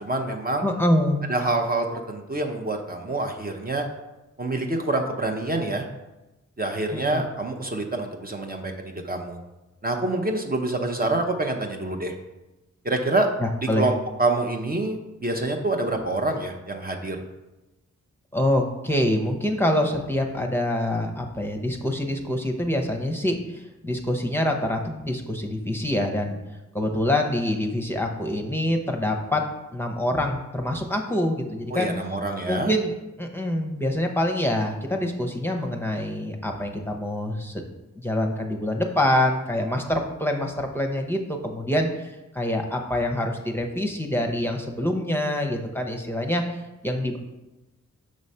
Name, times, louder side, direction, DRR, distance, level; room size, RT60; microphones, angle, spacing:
voice 1, 0.0-0.7 1.3-3.9 4.4-5.9 6.6-9.4 9.8-12.1 12.8-13.3 13.8-17.2 31.7-32.7, right 2 dB, 30° right, 2 dB, 0.8 m, -26 dB
voice 2, 0.6-1.3 6.9-7.2 13.4-13.9 18.3-26.4 26.7-29.5 29.7-31.9 32.5-32.9 33.2-37.6 37.9-46.4 46.8-47.2, left 1 dB, 5° left, 1 dB, 0.8 m, -25 dB
6.3 x 3.1 x 5.4 m, 1.0 s
cardioid pair, 55°, 31 cm